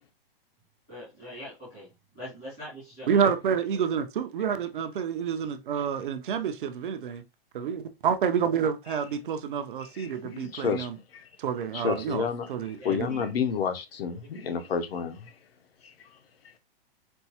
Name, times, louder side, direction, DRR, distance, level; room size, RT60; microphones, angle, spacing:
voice 1, 0.9-3.3 3.7-3.9 12.8-13.3 14.2-14.7, equal, 5° left, 0.3 m, -43 dB
voice 2, 3.1-7.2 7.5-11.0 11.4-13.1, right 7 dB, 60° right, 0.6 m, -28 dB
voice 3, 10.0-10.9 11.1-11.3 11.7-15.3, left 6 dB, 80° left, 0.8 m, -30 dB
4.4 x 2.1 x 2.8 m
hypercardioid pair, 170°, 30 cm